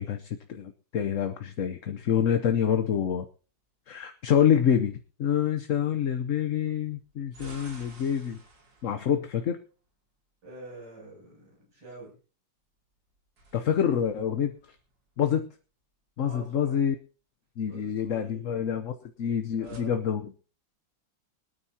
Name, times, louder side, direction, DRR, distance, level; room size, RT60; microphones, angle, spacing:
voice 1, 0.0-3.3 3.9-8.4 8.8-9.6 13.5-14.5 15.2-15.5 16.2-16.9 17.6-20.3, left 8 dB, 55° left, 8 dB, 1.1 m, -27 dB
sound 1, 2.5-3.2 6.9-10.2 13.0-15.5 19.2-19.8, right 2 dB, 90° right, 3.3 m, -54 dB
voice 2, 10.4-12.1 16.3-16.7 17.7-18.8 19.6-20.1, right 2 dB, 70° right, -3 dB, 8.2 m, -46 dB
24.5 x 9.4 x 2.8 m, 0.37 s
omnidirectional pair, 1.9 m